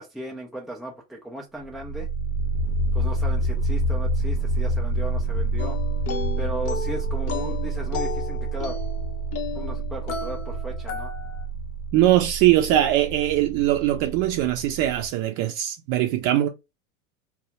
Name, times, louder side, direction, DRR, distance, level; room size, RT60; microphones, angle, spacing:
voice 1, 0.0-2.1 2.9-5.8 6.1-8.8 9.5-11.1, right 1 dB, ahead, 0.3 m, -36 dB
sound 1, 1.7-15.1, right 2 dB, 65° left, 0.8 m, -28 dB
sound 2, 5.6-11.5, left 7 dB, 35° left, 0.6 m, -34 dB
voice 2, 11.9-16.5, right 13 dB, 45° right, 0.6 m, -21 dB
2.3 x 2.0 x 2.8 m
hypercardioid pair, 95°, 43 cm